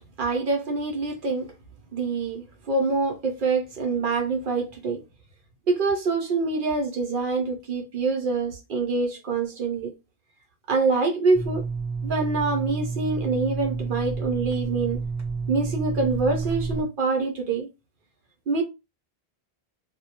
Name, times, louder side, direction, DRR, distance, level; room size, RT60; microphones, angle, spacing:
voice 1, 0.2-1.5 1.9-5.0 5.7-9.9 10.7-11.6 12.0-15.0 15.5-17.7 18.5-18.6, right 3 dB, 60° right, 0.6 m, -25 dB
sound 1, 11.3-16.8, right 4 dB, 15° right, 0.8 m, -30 dB
2.1 x 2.1 x 2.8 m
omnidirectional pair, 1.1 m